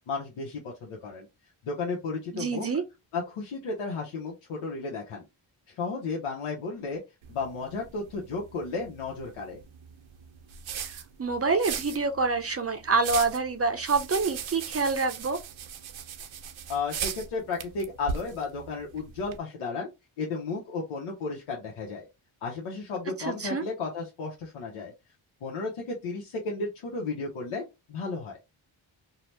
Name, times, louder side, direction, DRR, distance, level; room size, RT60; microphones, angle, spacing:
voice 1, 0.1-1.3 1.6-2.7 3.1-5.2 5.7-7.0 7.3-9.6 16.7-19.9 20.2-22.1 22.4-24.9 25.4-27.6 27.9-28.4, left 4 dB, 90° left, 0.8 m, -33 dB
voice 2, 2.3-2.8 10.8-15.4 23.2-23.6, right 4 dB, 30° right, 0.5 m, -27 dB
sound 1, 7.2-19.4, right 7 dB, 70° right, 0.6 m, -39 dB
2.8 x 2.0 x 3.1 m
cardioid pair, 65°, 48 cm